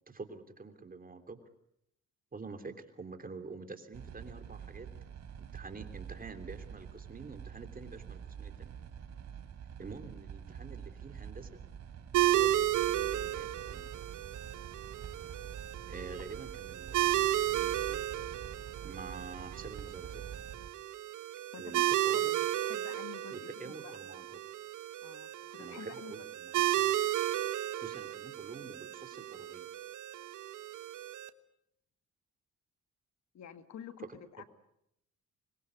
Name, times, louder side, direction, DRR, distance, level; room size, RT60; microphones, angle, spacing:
voice 1, 0.1-1.4 2.3-4.9 5.4-8.7 9.8-11.6 12.2-12.6 12.9-13.9 15.9-18.0 18.8-20.2 21.6-22.3 23.3-24.3 25.6-26.9 27.8-29.7, right 4 dB, 30° right, 7 dB, 3.2 m, -47 dB
sound 1, 3.9-20.7, right 7 dB, 60° right, 3.7 m, -47 dB
sound 2, 12.1-31.3, right 13 dB, 85° right, 1.3 m, -34 dB
voice 2, 21.5-24.0 25.0-26.3 33.3-34.4, left 8 dB, 65° left, 9 dB, 2.0 m, -50 dB
25.5 x 21.5 x 8.4 m, 0.78 s
cardioid pair, 90°, 30 cm